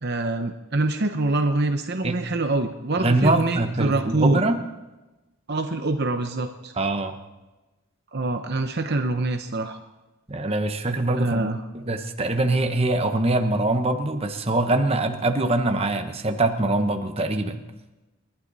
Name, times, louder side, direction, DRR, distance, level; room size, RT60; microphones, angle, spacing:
voice 1, 0.0-4.4 5.5-6.7 8.1-9.8 11.2-11.6, right 2 dB, 45° right, 6 dB, 0.8 m, -25 dB
voice 2, 3.0-4.6 6.7-7.2 10.3-11.5 11.7-17.6, right 2 dB, 25° right, 6 dB, 1.1 m, -23 dB
28.0 x 11.5 x 4.1 m, 1.1 s
head